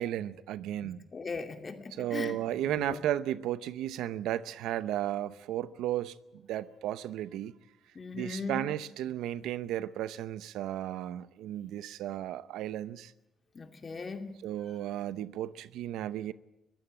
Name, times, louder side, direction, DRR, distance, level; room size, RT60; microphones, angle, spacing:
voice 1, 0.0-1.0 2.0-7.5 8.1-13.1 14.4-16.3, right 12 dB, 90° right, 0.7 m, -34 dB
voice 2, 0.8-2.4 2.6-3.0 7.9-8.7 13.5-14.3, left 4 dB, 35° left, 2.5 m, -39 dB
22.0 x 15.0 x 8.9 m
cardioid pair, 90°, 0 cm